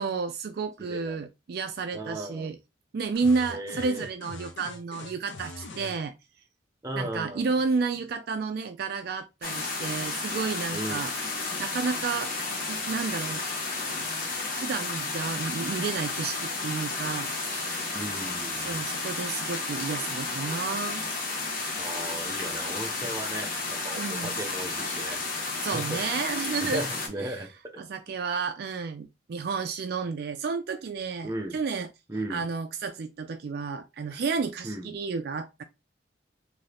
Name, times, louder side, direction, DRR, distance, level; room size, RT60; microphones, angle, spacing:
voice 1, 0.0-2.6 2.9-6.1 7.0-11.1 11.6-12.3 12.7-13.4 13.9-14.0 14.5-17.8 18.6-21.1 24.0-24.4 25.6-26.8 27.2-27.4 27.8-31.9 32.3-35.6, right 4 dB, 55° right, 0.3 m, -31 dB
voice 2, 0.8-1.3 1.9-2.5 3.5-4.1 6.8-7.6 10.7-11.1 17.9-18.9 21.8-25.2 25.7-26.0 26.6-27.8 31.2-31.6 32.1-32.4 34.1-34.2 34.6-34.9, right 1 dB, 20° right, 0.6 m, -36 dB
sound 1, 3.2-6.0, left 2 dB, 80° left, 0.6 m, -42 dB
sound 2, 9.4-27.1, left 3 dB, 50° left, 0.9 m, -32 dB
2.7 x 2.6 x 3.3 m
head